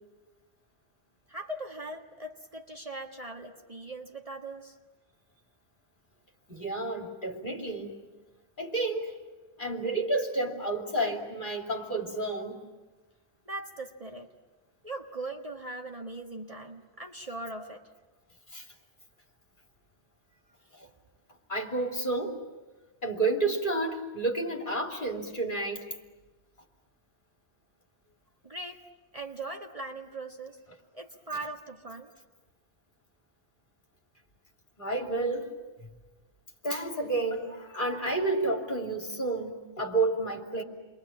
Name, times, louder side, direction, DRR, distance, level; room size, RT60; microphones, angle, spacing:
voice 1, 1.3-4.7 13.5-14.3 14.8-17.8 28.4-28.8 29.1-30.6 30.9-32.1, right 2 dB, 35° right, 2 dB, 1.7 m, -40 dB
voice 2, 6.5-8.0 8.6-9.1 9.6-12.6 18.5-18.7 20.7-20.9 21.5-22.4 23.0-25.9 34.8-35.5 36.6-40.6, right 2 dB, 50° left, 1 dB, 3.0 m, -30 dB
29.0 x 22.5 x 8.6 m, 1.2 s
omnidirectional pair, 1.1 m